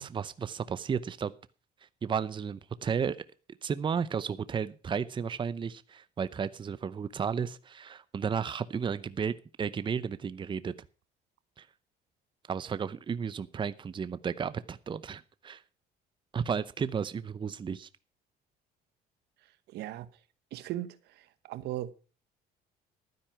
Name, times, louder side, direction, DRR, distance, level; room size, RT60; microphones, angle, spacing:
voice 1, 0.0-1.3 2.0-3.2 3.6-10.7 11.6-11.7 12.5-15.6 16.3-17.9, right 6 dB, 30° right, 0.7 m, -33 dB
voice 2, 19.7-20.1 20.5-21.0 21.5-21.9, right 13 dB, 80° right, 1.1 m, -36 dB
12.5 x 9.7 x 5.9 m
cardioid pair, 110°, 17 cm